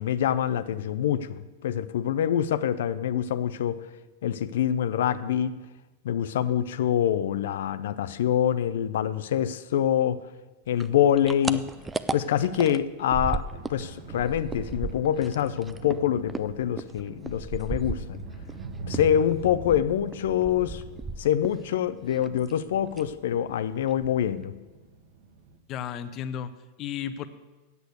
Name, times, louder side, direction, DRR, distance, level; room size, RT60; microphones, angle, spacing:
voice 1, 0.0-3.8 4.2-5.6 6.0-10.2 10.7-11.7 12.1-13.4 13.7-18.2 18.9-20.8 21.2-24.6, left 10 dB, 80° left, 12 dB, 0.4 m, -25 dB
sound 1, 10.8-13.8 14.1-18.6 18.9-21.7 21.9-22.6 22.9-23.2 23.5-23.6 23.9-24.4, right 4 dB, 10° right, 0.3 m, -35 dB
sound 2, 13.4-25.6, right 3 dB, 55° right, 1.3 m, -43 dB
voice 2, 25.7-27.3, left 9 dB, 35° left, 11 dB, 0.6 m, -34 dB
8.4 x 8.1 x 8.0 m, 1.2 s
supercardioid pair, 150°, 0 cm